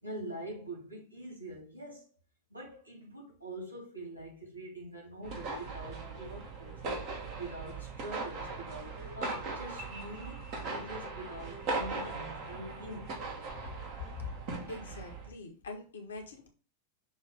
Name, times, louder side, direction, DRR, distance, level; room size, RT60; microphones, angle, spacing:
voice 1, 0.0-2.1 2.5-6.8 7.3-13.2, right 1 dB, 85° right, 2.8 m, -44 dB
sound 1, 5.2-15.3, right 3 dB, 45° right, 1.8 m, -39 dB
voice 2, 14.7-16.5, left 4 dB, 70° left, 1.4 m, -43 dB
6.5 x 3.2 x 5.1 m
figure-of-eight pair, 90°, 0 cm